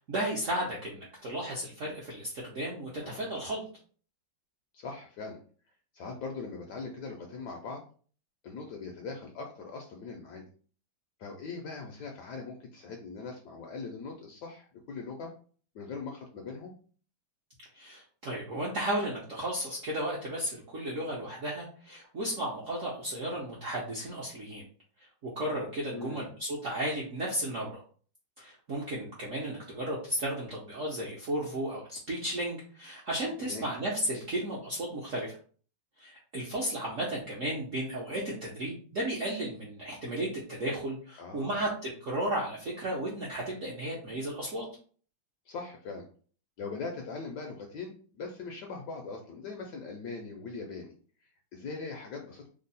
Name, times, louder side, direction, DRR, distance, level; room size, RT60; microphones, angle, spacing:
voice 1, 0.1-3.6 17.7-24.6 25.2-27.8 28.4-35.4 36.0-44.6, right 1 dB, 65° right, -4 dB, 0.7 m, -34 dB
voice 2, 3.0-3.5 4.7-5.4 5.9-7.8 8.4-10.5 11.2-15.3 15.7-16.7 25.9-26.3 33.4-33.7 41.2-41.7 45.5-46.1 46.6-50.9 51.2-52.5, left 4 dB, 75° left, 2 dB, 0.9 m, -41 dB
3.5 x 2.0 x 4.0 m, 0.43 s
omnidirectional pair, 2.3 m